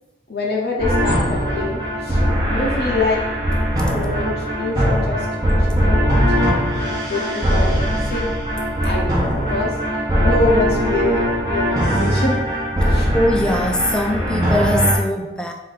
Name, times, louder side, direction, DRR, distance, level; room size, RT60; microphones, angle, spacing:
voice 1, 0.3-2.2 2.5-3.2 3.9-5.2 5.9-6.2 7.1-7.8 8.1-8.2 8.8-9.7 10.2-12.4 12.8-13.1, left 2 dB, 65° left, -2 dB, 0.7 m, -24 dB
sound 1, 0.8-15.0, equal, 20° right, 0.9 m, -20 dB
voice 2, 13.1-15.5, left 1 dB, 5° left, 3 dB, 0.3 m, -21 dB
4.3 x 2.6 x 4.0 m, 1.0 s
head